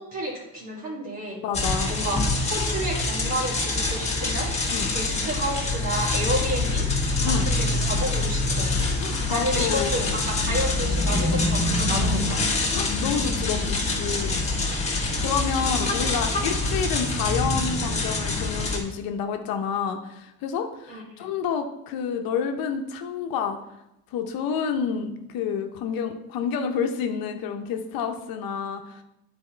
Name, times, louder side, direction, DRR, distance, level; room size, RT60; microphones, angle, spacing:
voice 1, 0.1-1.4 1.7-2.2 2.5-4.5 4.9-8.7 9.3-12.4 15.6-15.9 20.9-21.3, right 1 dB, 60° right, -4 dB, 2.2 m, -31 dB
voice 2, 1.4-1.9 4.7-4.9 7.2-7.5 9.0-9.9 12.7-14.4 15.2-23.6 24.1-29.0, left 7 dB, 65° left, 5 dB, 0.8 m, -29 dB
sound 1, 1.5-18.8, left 2 dB, 15° left, 1.3 m, -25 dB
8.7 x 4.3 x 4.3 m, 0.87 s
cardioid pair, 140°, 38 cm